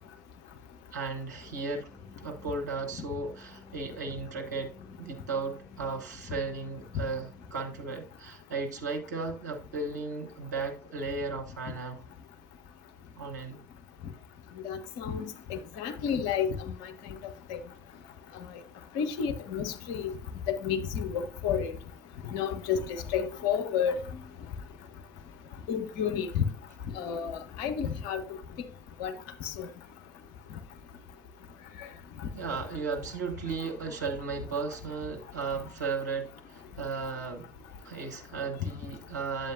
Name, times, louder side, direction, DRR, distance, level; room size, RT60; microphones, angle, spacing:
voice 1, 0.9-1.9 2.2-12.1 13.2-13.6 32.3-37.5 37.8-39.5, right 4 dB, 75° right, 1.0 m, -35 dB
sound 1, 1.4-7.9, left 2 dB, 5° right, 2.8 m, -54 dB
voice 2, 14.6-16.8 17.5-17.6 19.0-20.1 20.5-21.7 22.3-24.0 25.7-26.4 27.0-28.2 29.0-29.1 29.4-29.7, left 7 dB, 65° left, 0.8 m, -31 dB
9.0 x 7.8 x 2.5 m
figure-of-eight pair, 50°, 9 cm